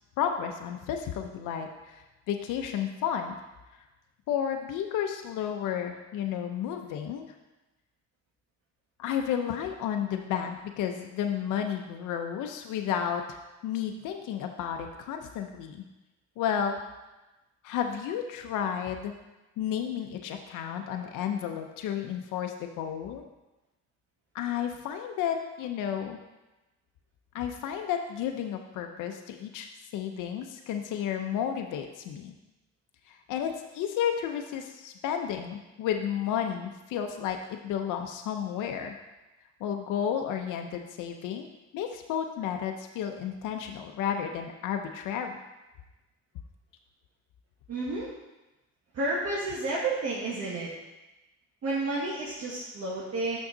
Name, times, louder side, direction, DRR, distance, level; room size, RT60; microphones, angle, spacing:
voice 1, 0.2-3.4 4.3-7.2 9.0-15.8 16.4-16.8 17.6-19.1 19.6-23.2 24.3-26.2 27.3-32.3 33.1-38.9 39.6-41.5 41.7-45.4, left 8 dB, 90° left, 4 dB, 0.6 m, -32 dB
voice 2, 47.7-48.1 48.9-50.7 51.6-53.4, right 2 dB, 55° right, -6 dB, 1.4 m, -31 dB
6.3 x 6.0 x 3.8 m, 1.1 s
cardioid pair, 90°, 30 cm